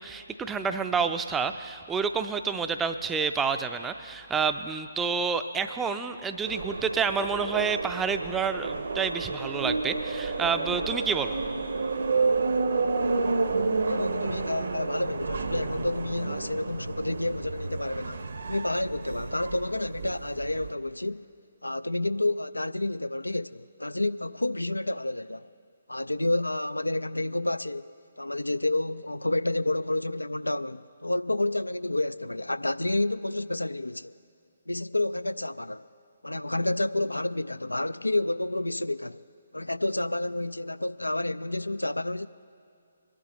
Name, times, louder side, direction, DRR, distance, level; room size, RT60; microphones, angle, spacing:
voice 1, 0.0-11.4, right 5 dB, 10° right, 0.4 m, -29 dB
sound 1, 6.5-20.7, right 4 dB, 60° right, 0.8 m, -30 dB
voice 2, 13.9-21.3 21.6-25.5 25.9-34.1 34.7-35.9 36.2-39.2 39.5-42.3, left 2 dB, 85° left, 0.3 m, -29 dB
25.0 x 11.0 x 3.0 m
figure-of-eight pair, 140°, 0 cm